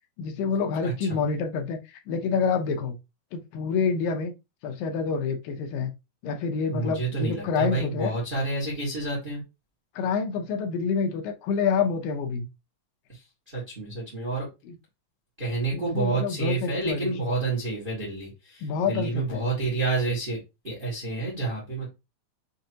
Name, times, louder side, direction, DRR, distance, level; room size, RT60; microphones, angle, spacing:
voice 1, 0.2-3.0 3.3-4.3 4.6-5.9 6.2-8.2 10.0-12.5 14.7-14.8 15.7-17.1 18.6-19.5, left 5 dB, 80° left, 2.4 m, -27 dB
voice 2, 0.8-1.2 6.7-9.4 13.1-14.5 15.4-20.4 20.6-21.9, right 3 dB, 30° right, 0.9 m, -29 dB
6.5 x 2.8 x 2.8 m
omnidirectional pair, 4.1 m